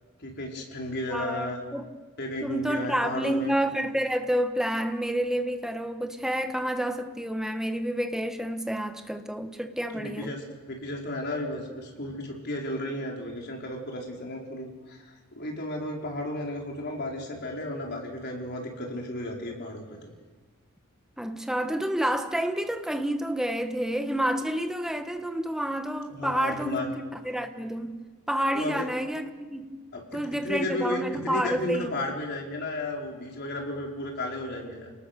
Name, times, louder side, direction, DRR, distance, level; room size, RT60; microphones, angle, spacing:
voice 1, 0.2-1.6 2.2-3.5 9.9-20.1 26.1-26.9 28.5-28.9 29.9-30.0 30.4-34.9, left 1 dB, 50° left, 4.7 m, -34 dB
voice 2, 1.1-1.8 2.4-10.3 21.2-28.0 28.3-29.8 30.1-32.0, equal, ahead, 1.3 m, -29 dB
29.0 x 19.0 x 6.9 m
head